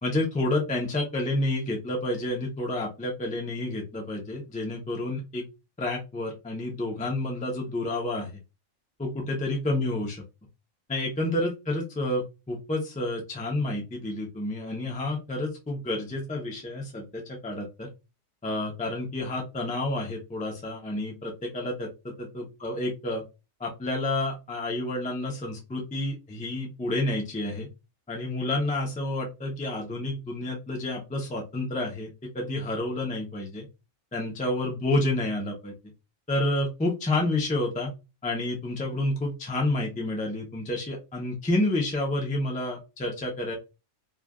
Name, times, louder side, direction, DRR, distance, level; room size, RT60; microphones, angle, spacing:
voice 1, 0.0-5.4 5.8-8.3 9.0-10.2 10.9-17.9 18.4-23.2 23.6-27.7 28.1-33.7 34.1-35.7 36.3-37.9 38.2-43.5, left 1 dB, 10° left, -1 dB, 0.3 m, -29 dB
3.1 x 2.4 x 2.2 m, 0.27 s
omnidirectional pair, 1.4 m